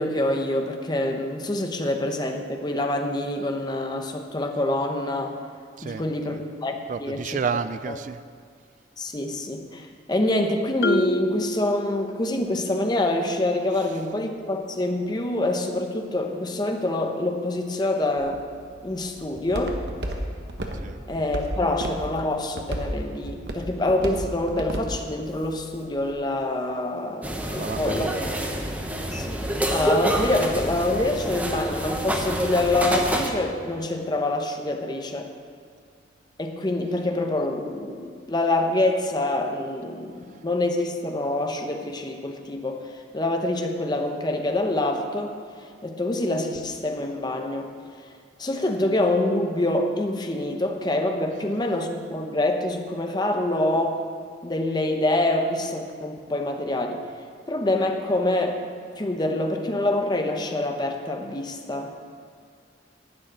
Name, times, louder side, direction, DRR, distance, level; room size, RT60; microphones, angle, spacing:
voice 1, 0.0-5.4 5.8-7.4 7.9-8.0 9.0-18.4 18.8-19.8 21.1-28.2 29.1-35.3 36.4-45.4 45.8-47.7 48.4-54.0 54.4-57.0 57.5-58.6 59.0-61.9, left 1 dB, 25° left, 4 dB, 0.9 m, -26 dB
voice 2, 5.8-6.4 6.9-8.2 13.7-13.9 17.8-17.9 20.8-21.0 27.5-28.2 51.3-51.4, right 5 dB, 45° right, 13 dB, 0.3 m, -31 dB
Marimba xylophone, 10.8-12.6, equal, 55° left, 0.5 m, -28 dB
Walk footsteps, 18.2-26.1, right 1 dB, 65° right, 1.3 m, -34 dB
sound 1, 27.2-33.3, right 1 dB, 10° right, 0.9 m, -27 dB
11.5 x 6.5 x 9.5 m, 2.2 s
head